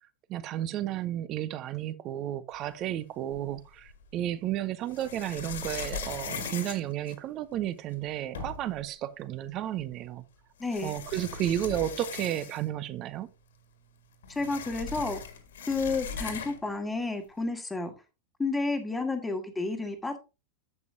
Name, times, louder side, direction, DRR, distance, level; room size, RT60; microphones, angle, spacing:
voice 1, 0.3-10.2 10.8-13.3, right 12 dB, 35° right, 0.8 m, -32 dB
sound 1, 3.3-4.1 4.9-7.6 8.0-8.1 8.3-8.8 9.9-10.0 10.6-12.8 13.1-13.2 13.5-16.7, left 5 dB, 60° left, 1.7 m, -39 dB
voice 2, 10.6-10.9 14.3-15.2 15.7-17.9 18.4-20.2, left 3 dB, 10° left, 1.7 m, -31 dB
10.5 x 7.8 x 2.7 m
figure-of-eight pair, 90°, 0 cm